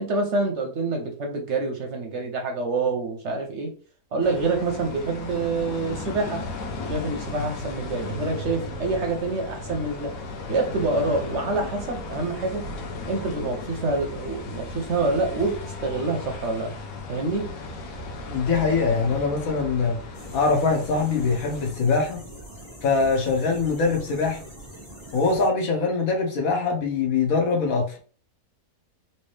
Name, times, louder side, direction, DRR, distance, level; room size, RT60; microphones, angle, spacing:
voice 1, 0.0-3.8 4.1-6.5 6.9-10.1 10.5-12.7 13.1-16.7 17.1-17.5, right 3 dB, 60° right, 0.8 m, -27 dB
sound 1, 4.2-21.7, left 3 dB, 85° left, 1.3 m, -36 dB
sound 2, 8.0-10.6, right 1 dB, 75° right, 0.4 m, -41 dB
voice 2, 18.3-20.0 20.3-22.2 22.8-24.4 25.1-28.0, left 4 dB, 65° left, 1.3 m, -23 dB
sound 3, 20.1-25.5, right 1 dB, 20° left, 1.2 m, -43 dB
3.3 x 2.9 x 3.2 m
omnidirectional pair, 1.6 m